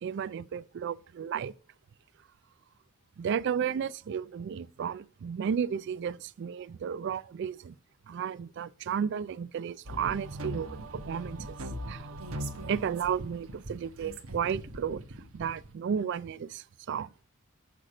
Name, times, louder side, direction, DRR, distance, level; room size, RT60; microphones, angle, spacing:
voice 1, 0.0-1.5 3.2-7.7 8.1-11.6 11.9-12.1 12.7-15.0 15.3-17.1, right 7 dB, 50° right, 0.3 m, -33 dB
sound 1, 9.9-15.7, right 1 dB, 70° right, 1.0 m, -40 dB
6.5 x 6.0 x 4.8 m
head